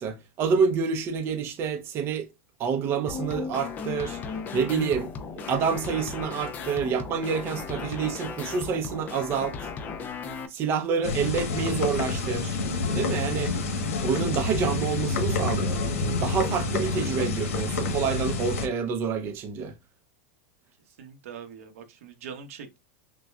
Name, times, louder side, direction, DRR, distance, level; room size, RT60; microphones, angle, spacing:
voice 1, 0.0-2.3 2.6-5.1 5.5-9.7 10.5-12.6 12.9-13.5 14.0-15.8 16.2-19.7, right 6 dB, 30° right, 0.6 m, -28 dB
sound 1, 3.1-10.5, left 5 dB, 25° left, 0.5 m, -36 dB
sound 2, 11.0-18.7, left 3 dB, 85° left, 1.1 m, -28 dB
voice 2, 20.9-22.8, right 7 dB, 75° right, 1.0 m, -43 dB
6.0 x 2.2 x 2.3 m
supercardioid pair, 150°, 8 cm